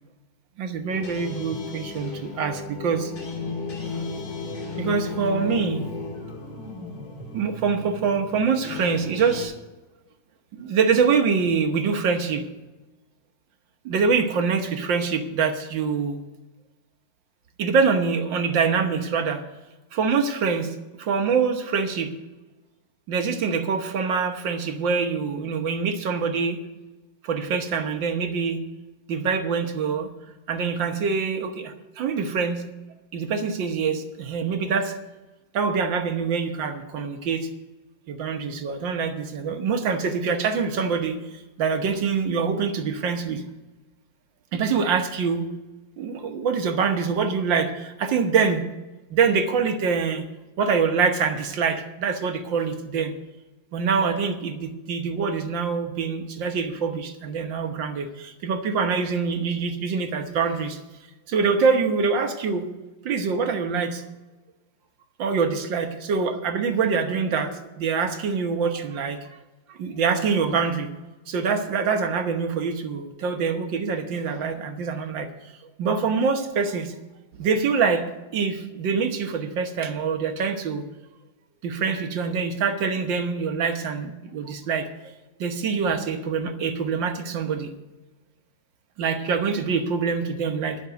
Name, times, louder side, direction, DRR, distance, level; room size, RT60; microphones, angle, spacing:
voice 1, 0.6-3.1 3.8-4.1 4.8-5.9 7.3-9.5 10.5-12.5 13.9-16.2 17.6-19.4 19.9-22.1 23.1-26.6 27.2-28.6 29.1-30.1 30.5-32.6 33.1-34.9 35.5-37.5 38.1-43.4 44.5-45.5 46.0-48.6 49.1-50.2 50.6-53.1 53.7-60.8 61.3-62.7 63.1-64.0 65.2-69.2 69.7-70.9 71.3-75.3 75.8-77.0 77.4-78.0 78.3-80.9 81.6-84.9 85.4-87.7 89.0-90.8, right 5 dB, 75° right, 6 dB, 1.8 m, -25 dB
sound 1, 0.9-9.4, left 4 dB, 85° left, 3.4 m, -34 dB
11.5 x 6.0 x 9.2 m, 1.1 s
omnidirectional pair, 2.1 m